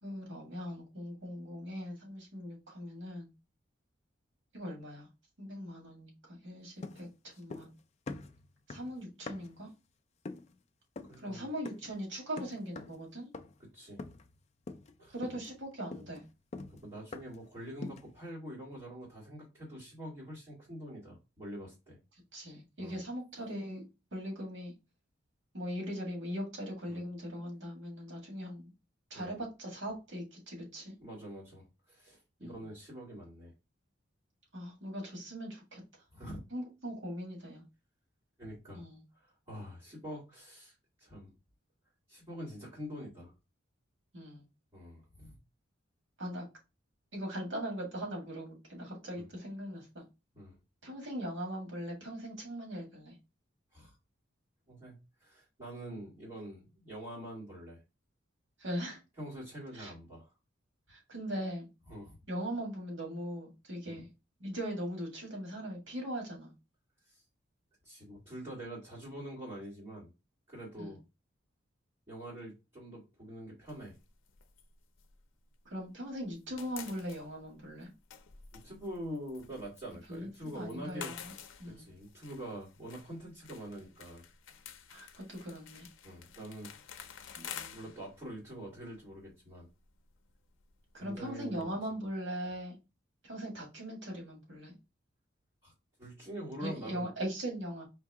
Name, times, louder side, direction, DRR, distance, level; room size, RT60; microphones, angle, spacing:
voice 1, 0.0-3.3 4.5-5.1 5.4-7.7 8.7-9.7 11.2-13.3 15.1-16.2 22.3-23.8 24.1-24.7 25.5-28.7 29.1-30.9 32.4-32.6 34.5-35.8 36.5-37.6 38.7-39.0 44.1-44.5 46.2-46.4 47.1-50.0 50.8-53.1 58.6-59.0 59.7-59.9 60.9-61.7 62.3-64.1 64.4-66.5 70.8-71.0 75.6-77.9 80.1-81.3 81.6-81.9 84.9-85.9 87.3-87.8 90.9-92.8 93.2-94.7 96.6-97.8, equal, 75° right, 0 dB, 1.8 m, -40 dB
sound 1, 6.8-7.8 8.1-9.6 10.2-10.5 11.0-11.2 11.6-12.0 12.4-13.0 13.3-13.7 14.0-14.4 14.7-14.9 15.2-17.5 17.8-18.2, left 3 dB, 35° left, 0.3 m, -45 dB
voice 2, 11.0-11.5 13.7-14.0 15.0-15.2 16.7-22.0 22.8-23.0 26.9-27.0 29.1-29.3 31.0-33.5 36.1-36.4 38.4-38.8 39.2-41.3 42.1-43.3 44.7-45.4 49.1-49.3 50.3-50.6 53.7-54.0 54.7-57.8 59.2-60.3 61.9-62.2 63.9-64.0 67.8-70.1 70.5-71.0 72.1-73.9 78.6-81.1 81.6-84.2 86.0-86.7 87.7-89.7 91.0-91.7 95.6-95.7 96.0-97.1, equal, 30° right, -11 dB, 2.1 m, -45 dB
sound 2, 73.7-75.9 76.2-91.6, left 8 dB, 85° left, 0.5 m, -51 dB
4.5 x 2.7 x 3.5 m, 0.27 s
head